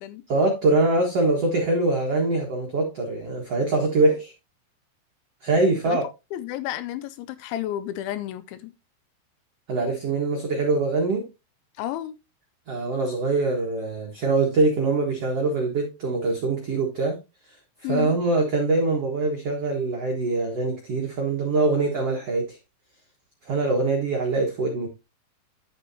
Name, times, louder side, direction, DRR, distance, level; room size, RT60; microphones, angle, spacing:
voice 1, 0.3-4.3 5.4-6.0 9.7-11.3 12.7-17.2 17.9-22.6 23.5-24.9, right 3 dB, 80° right, 1.3 m, -23 dB
voice 2, 6.3-8.7 11.8-12.1 17.8-18.1, left 13 dB, 80° left, 2.8 m, -31 dB
10.5 x 7.8 x 2.8 m
omnidirectional pair, 5.6 m